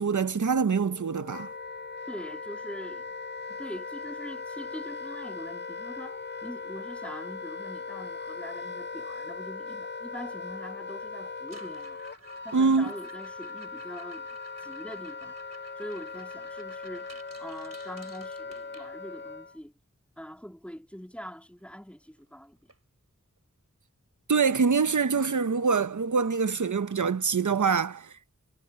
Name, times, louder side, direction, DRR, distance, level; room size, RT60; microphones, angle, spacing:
voice 1, 0.0-1.5 12.5-12.9 24.3-28.1, right 5 dB, 85° right, 0.7 m, -25 dB
Wind instrument woodwind instrument, 0.8-19.6, left 4 dB, 40° left, 0.5 m, -39 dB
voice 2, 2.1-3.0 3.5-12.0 12.4-14.3 14.6-15.4 15.8-19.7 20.2-22.7, equal, 5° left, 3.0 m, -43 dB
sound 1, 11.4-19.3 21.6-21.7 21.9-22.3 22.7-22.8 23.4-23.5 25.4-25.5, right 3 dB, 60° right, 3.8 m, -54 dB
wide cardioid pair, 45°, 29 cm